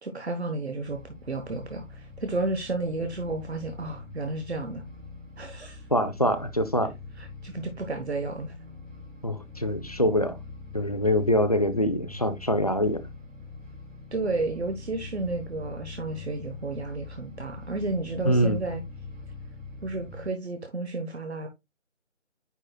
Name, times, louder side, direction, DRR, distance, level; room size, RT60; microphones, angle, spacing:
voice 1, 0.0-4.8 5.4-5.9 7.2-8.5 14.1-18.8 19.8-21.5, right 2 dB, 55° right, 1.3 m, -32 dB
sound 1, 0.8-20.3, left 3 dB, 80° right, 3.2 m, -43 dB
voice 2, 5.9-6.9 9.2-10.4 10.7-13.1 18.2-18.6, equal, 30° left, 0.6 m, -24 dB
9.9 x 4.3 x 2.3 m
figure-of-eight pair, 165°, 38 cm